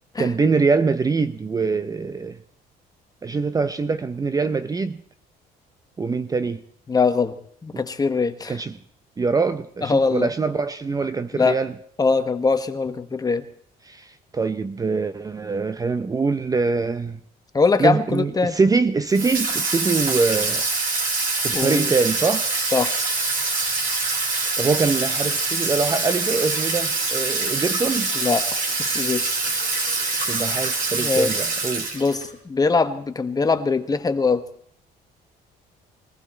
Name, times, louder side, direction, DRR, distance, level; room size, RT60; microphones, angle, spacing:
voice 1, 0.2-2.4 3.2-5.0 6.0-6.6 8.5-8.8 9.2-11.7 13.8-17.2 17.8-20.7 21.4-22.5 24.6-28.1 30.3-31.9, right 4 dB, 20° right, 0.6 m, -23 dB
voice 2, 6.9-7.3 7.6-8.6 9.8-10.3 11.3-11.6 12.0-13.4 17.5-18.6 21.5-21.9 22.7-22.9 28.1-29.4 30.0-30.2 30.9-31.3 31.9-34.4, left 4 dB, 20° left, 1.3 m, -22 dB
Water tap faucet / Sink (filling or washing), 19.1-32.3, right 3 dB, 55° right, 4.4 m, -24 dB
21.5 x 15.0 x 4.4 m
cardioid pair, 110°, 17 cm